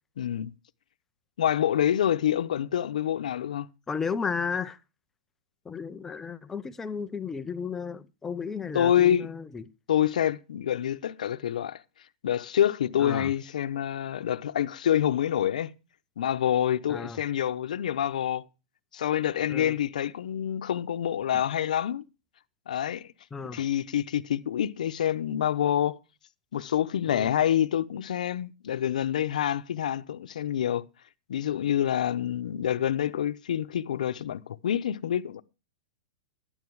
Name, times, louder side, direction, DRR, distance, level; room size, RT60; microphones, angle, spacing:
voice 1, 0.2-0.5 1.4-3.7 8.7-9.3 9.9-11.8 12.2-15.7 16.2-18.4 18.9-22.0 22.7-23.1 23.5-26.0 26.5-30.8 31.3-35.4, left 10 dB, 85° left, 0.7 m, -27 dB
voice 2, 3.9-4.8 5.7-9.6 13.0-13.3 16.9-17.2 19.5-19.7 23.3-23.6 27.1-27.3, left 5 dB, 10° left, 0.5 m, -33 dB
11.5 x 9.1 x 4.7 m
supercardioid pair, 165°, 4 cm